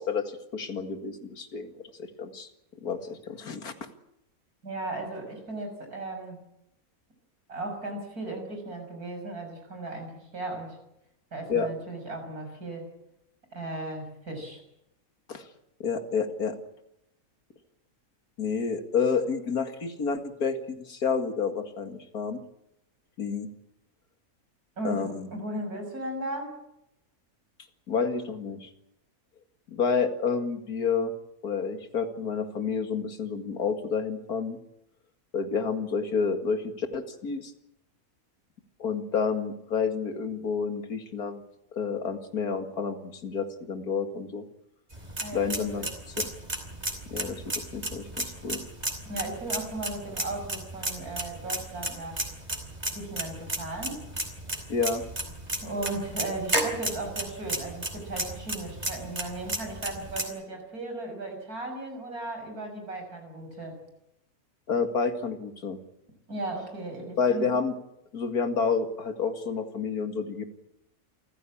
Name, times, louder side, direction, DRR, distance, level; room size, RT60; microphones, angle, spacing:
voice 1, 0.0-2.5 2.8-3.7 11.5-11.7 15.3-15.5 15.8-16.6 18.4-22.4 23.2-23.5 24.8-25.3 27.9-28.7 29.7-31.1 31.4-34.6 35.3-37.5 38.8-41.4 41.7-44.5 45.3-45.9 46.2-46.3 47.1-48.6 54.7-55.0 64.7-65.8 67.2-67.7 68.1-70.4, left 5 dB, 85° left, 8 dB, 2.5 m, -29 dB
voice 2, 4.6-6.4 7.5-10.8 11.3-12.9 13.5-14.6 24.8-26.5 45.2-45.9 49.0-52.2 52.9-54.0 55.6-63.8 66.3-67.5, right 2 dB, 85° right, 4 dB, 6.8 m, -36 dB
sound 1, 44.9-60.2, right 1 dB, 25° right, 4.4 m, -34 dB
28.0 x 15.0 x 8.6 m, 0.83 s
omnidirectional pair, 1.5 m